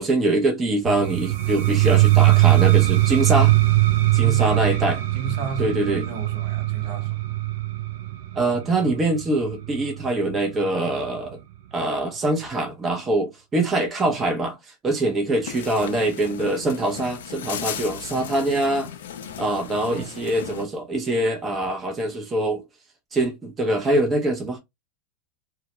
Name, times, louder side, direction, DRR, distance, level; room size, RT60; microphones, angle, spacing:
voice 1, 0.0-3.5 4.1-5.0 5.6-6.0 8.3-11.4 11.7-18.9 19.4-22.6 23.1-24.6, right 2 dB, 25° right, 0.6 m, -24 dB
sound 1, 0.9-10.6, right 18 dB, 70° right, 0.4 m, -20 dB
voice 2, 4.1-4.7 5.1-7.3 19.8-20.3, right 4 dB, 55° right, 0.9 m, -35 dB
sound 2, 15.4-20.7, left 9 dB, 80° left, 0.4 m, -36 dB
2.3 x 2.1 x 2.9 m
hypercardioid pair, 115°, 0 cm